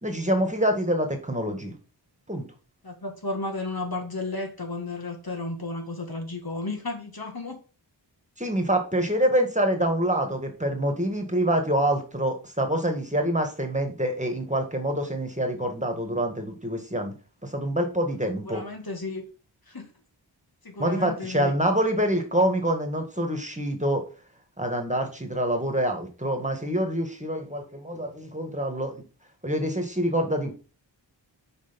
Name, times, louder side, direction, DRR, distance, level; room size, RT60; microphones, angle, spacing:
voice 1, 0.0-1.7 2.3-2.5 8.4-17.1 17.4-18.6 20.8-24.0 24.6-29.0 29.4-30.5, right 1 dB, 15° right, 4 dB, 1.8 m, -26 dB
voice 2, 2.8-7.6 18.4-19.2 19.7-19.9 20.6-21.5, left 2 dB, 50° left, 3 dB, 2.0 m, -33 dB
6.7 x 5.1 x 5.2 m, 0.36 s
wide cardioid pair, 65°, 45 cm